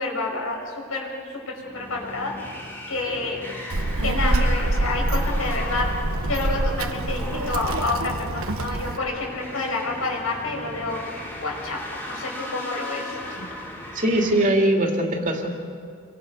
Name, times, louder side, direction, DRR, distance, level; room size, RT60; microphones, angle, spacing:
voice 1, 0.0-2.6 2.9-3.4 4.0-5.9 6.2-11.0 11.4-13.2, left 3 dB, 85° left, 0 dB, 6.1 m, -29 dB
sound 1, 1.5-14.4, left 1 dB, 10° left, 3.4 m, -37 dB
Child speech kid speaking, 3.7-9.0, right 2 dB, 85° right, 1.2 m, -25 dB
voice 2, 13.9-15.5, right 1 dB, 40° right, 1 dB, 2.6 m, -21 dB
29.5 x 24.5 x 5.4 m, 2.2 s
head